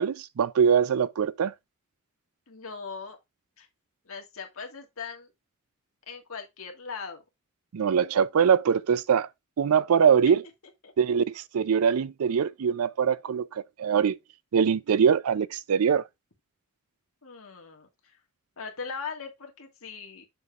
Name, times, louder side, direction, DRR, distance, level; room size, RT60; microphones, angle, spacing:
voice 1, 0.0-1.5 7.7-9.3 9.6-10.4 11.0-14.2 14.5-16.0, right 7 dB, 75° right, 0.4 m, -23 dB
voice 2, 2.5-3.2 3.6-3.7 4.1-5.3 6.1-7.2 10.8-10.9 17.2-18.2 18.6-20.3, left 5 dB, 70° left, 1.7 m, -39 dB
7.0 x 6.8 x 2.4 m
head